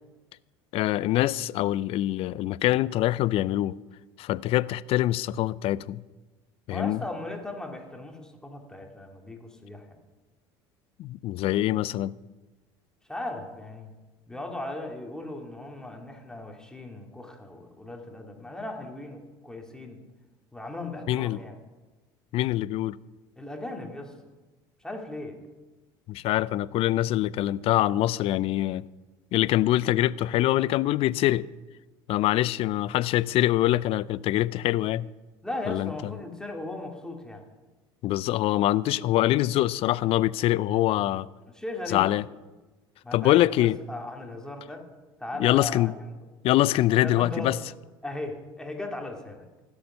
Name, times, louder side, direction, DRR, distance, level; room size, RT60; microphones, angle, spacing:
voice 1, 0.7-3.8 4.2-6.0 6.7-7.0 11.0-12.1 21.1-21.4 22.3-23.0 26.1-28.8 29.3-31.5 32.1-35.1 35.7-35.9 38.0-41.3 41.9-42.2 43.1-43.7 45.4-45.9 46.4-47.6, left 15 dB, 50° left, 0.4 m, -24 dB
voice 2, 6.7-10.0 13.1-13.9 14.3-20.0 20.5-21.5 23.4-24.1 24.8-25.4 35.4-37.4 41.5-42.1 43.0-44.9 45.2-45.9 47.0-47.6 48.0-49.5, left 2 dB, 5° left, 2.3 m, -37 dB
16.5 x 7.1 x 5.6 m
hypercardioid pair, 80°, 12 cm